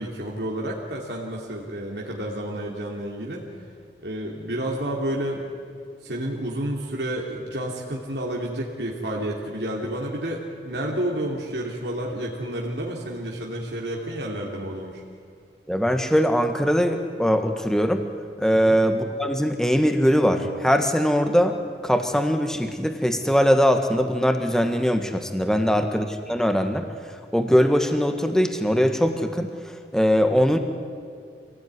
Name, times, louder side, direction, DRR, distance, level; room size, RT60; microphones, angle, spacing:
voice 1, 0.0-3.4 4.0-5.4 6.0-15.0 18.5-18.8, right 1 dB, 80° right, -2 dB, 2.9 m, -30 dB
voice 2, 15.7-18.0 18.4-21.6 21.8-26.8 27.3-29.5 29.9-30.6, equal, 5° left, 6 dB, 1.6 m, -21 dB
26.0 x 18.0 x 9.7 m, 2.2 s
head